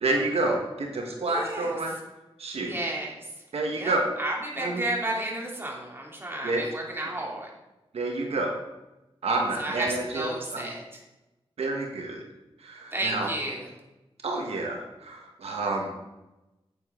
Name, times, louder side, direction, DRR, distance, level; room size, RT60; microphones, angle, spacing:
voice 1, 0.0-1.9 2.4-2.7 3.5-4.1 4.6-4.8 6.4-6.7 7.9-8.5 9.2-10.7 11.6-12.2 12.6-13.3 14.2-15.9, right 2 dB, 90° right, 1 dB, 1.4 m, -29 dB
voice 2, 1.3-1.7 2.6-3.2 3.7-7.5 9.6-11.0 12.9-13.7, right 1 dB, 25° right, -2 dB, 2.9 m, -32 dB
9.3 x 8.8 x 3.8 m, 1.0 s
wide cardioid pair, 70°, 10 cm